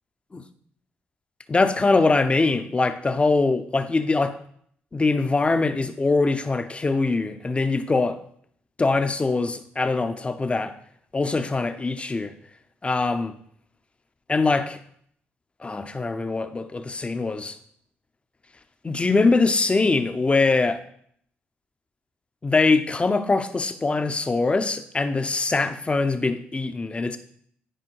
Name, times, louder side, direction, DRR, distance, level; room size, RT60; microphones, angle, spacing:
voice 1, 1.5-4.4 4.9-8.2 8.8-10.7 11.1-12.3 12.8-13.3 14.3-14.8 15.6-17.6 18.8-20.8 22.4-27.2, left 3 dB, 25° left, 0.8 m, -22 dB
10.5 x 5.0 x 4.7 m
supercardioid pair, 70°, 5 cm